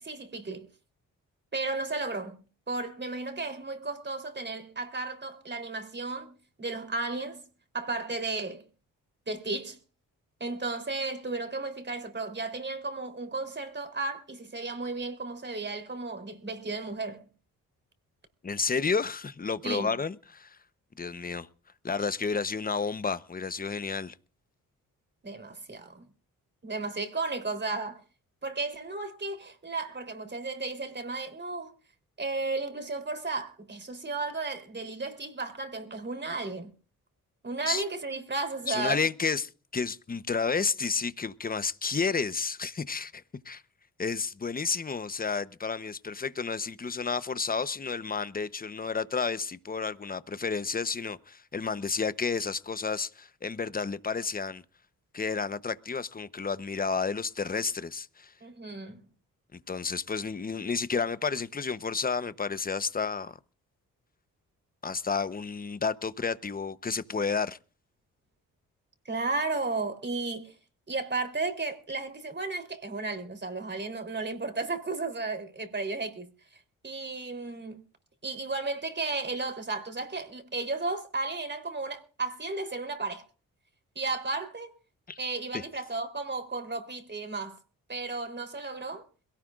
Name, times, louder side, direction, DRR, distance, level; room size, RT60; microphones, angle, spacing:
voice 1, 0.0-0.7 1.5-2.4 2.7-6.3 6.6-7.4 7.7-8.6 9.3-9.8 10.4-17.2 19.6-19.9 25.2-26.1 26.6-28.0 28.4-31.7 32.2-36.7 37.4-39.0 58.4-59.0 69.1-70.5 70.9-76.3 76.8-77.8 78.2-83.2 84.0-84.7 85.2-87.6 87.9-89.1, right 3 dB, 30° right, 3.6 m, -34 dB
voice 2, 18.4-20.6 21.0-21.5 21.8-24.1 37.7-37.8 38.7-43.6 44.0-54.6 55.1-58.3 59.5-63.4 64.8-67.6 85.1-85.2, left 5 dB, 25° left, 0.9 m, -31 dB
22.5 x 17.5 x 2.5 m
supercardioid pair, 55°, 34 cm